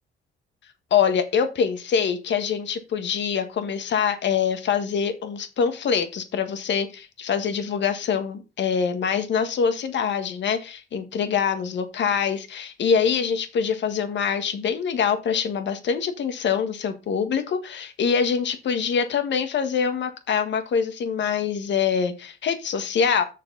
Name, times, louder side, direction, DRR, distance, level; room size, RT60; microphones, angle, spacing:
voice 1, 0.9-23.2, left 6 dB, 65° left, 1.7 m, -24 dB
6.8 x 6.6 x 5.5 m
cardioid pair, 90°, 20 cm